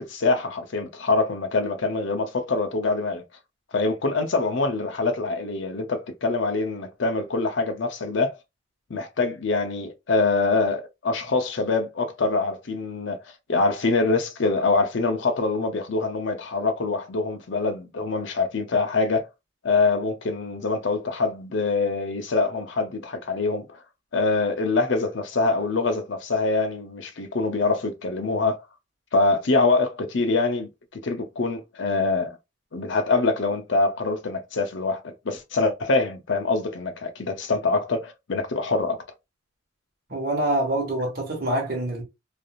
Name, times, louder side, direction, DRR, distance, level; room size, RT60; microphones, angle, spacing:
voice 1, 0.0-3.2 3.7-8.4 8.9-13.2 13.5-19.3 19.6-23.8 24.1-28.6 29.1-32.4 32.7-39.0, left 3 dB, 60° left, 0.6 m, -24 dB
voice 2, 40.1-42.0, right 1 dB, 50° right, 1.2 m, -25 dB
3.2 x 2.6 x 2.4 m
head